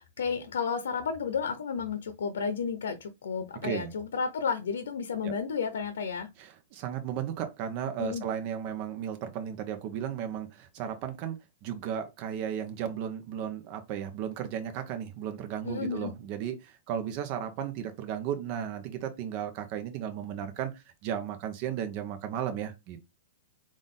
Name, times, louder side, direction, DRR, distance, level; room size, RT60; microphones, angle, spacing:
voice 1, 0.0-6.3 8.0-8.2 15.6-16.1, left 6 dB, 85° left, 0.7 m, -32 dB
voice 2, 6.4-23.1, right 9 dB, 40° right, 0.8 m, -35 dB
3.8 x 2.5 x 3.8 m
hypercardioid pair, 145°, 0 cm